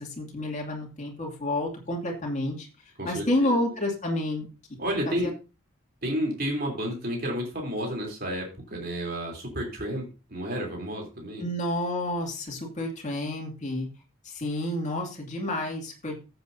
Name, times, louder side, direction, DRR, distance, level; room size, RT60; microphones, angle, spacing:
voice 1, 0.0-2.7 3.0-4.5 5.1-5.3 11.4-13.9 14.2-16.2, left 1 dB, 35° left, 0 dB, 2.4 m, -29 dB
voice 2, 3.0-3.6 4.8-5.3 6.0-11.5, equal, 45° right, 0 dB, 3.4 m, -31 dB
14.5 x 7.9 x 2.7 m, 0.31 s
head